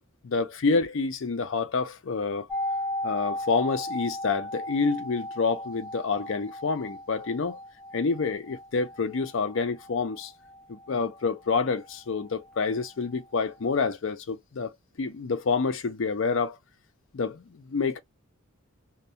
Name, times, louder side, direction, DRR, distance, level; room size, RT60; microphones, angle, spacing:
voice 1, 0.2-2.5 3.0-7.6 7.9-10.3 10.7-16.6 17.1-18.0, left 4 dB, 60° left, 0.5 m, -28 dB
sound 1, 2.5-12.2 12.5-12.6, left 1 dB, ahead, 0.5 m, -36 dB
2.2 x 2.1 x 2.6 m
head